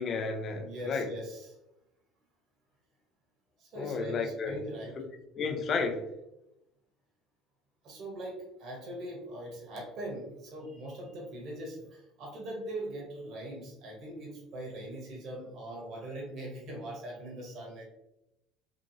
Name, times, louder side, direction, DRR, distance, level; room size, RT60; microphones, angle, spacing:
voice 1, 0.0-1.1 3.7-4.6 5.4-6.0, left 4 dB, 45° left, 3 dB, 0.6 m, -32 dB
voice 2, 0.6-1.6 3.6-5.0 7.8-17.8, right 1 dB, 55° right, -2 dB, 1.0 m, -41 dB
2.8 x 2.5 x 2.6 m, 0.87 s
hypercardioid pair, 70°, 0 cm